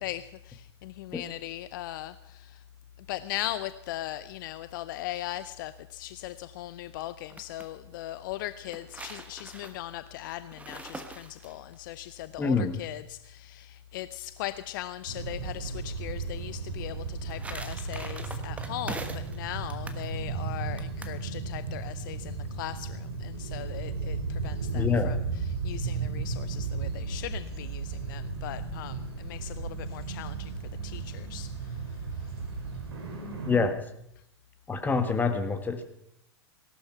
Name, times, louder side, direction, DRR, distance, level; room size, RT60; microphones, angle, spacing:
voice 1, 0.0-2.6 3.0-30.5 30.8-32.4, left 14 dB, 50° left, 14 dB, 0.6 m, -39 dB
sound 1, 7.1-7.7 8.5-11.8 16.9-19.4 19.7-20.0 20.8-21.2, right 3 dB, 10° right, 1.3 m, -43 dB
voice 2, 12.4-12.8 24.7-25.1 33.5-33.7 34.7-35.8, left 4 dB, 10° left, 7 dB, 1.6 m, -26 dB
sound 2, 15.1-33.6, right 4 dB, 65° right, 4.2 m, -35 dB
17.5 x 12.0 x 5.9 m, 0.76 s
figure-of-eight pair, 100°, 14 cm